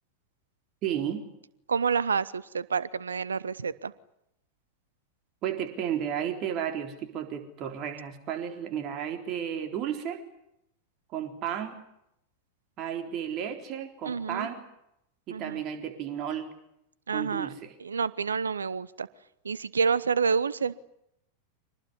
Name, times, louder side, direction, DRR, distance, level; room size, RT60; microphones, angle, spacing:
voice 1, 0.8-1.3 5.4-10.2 11.1-11.8 12.8-14.6 15.3-16.5 17.1-17.7, right 9 dB, 35° right, 6 dB, 3.8 m, -33 dB
voice 2, 1.7-3.9 14.1-14.5 15.3-15.6 17.1-17.5 17.8-19.1 19.4-20.7, right 5 dB, 70° right, 20 dB, 1.0 m, -28 dB
25.5 x 19.5 x 9.8 m, 0.80 s
figure-of-eight pair, 90°, 0 cm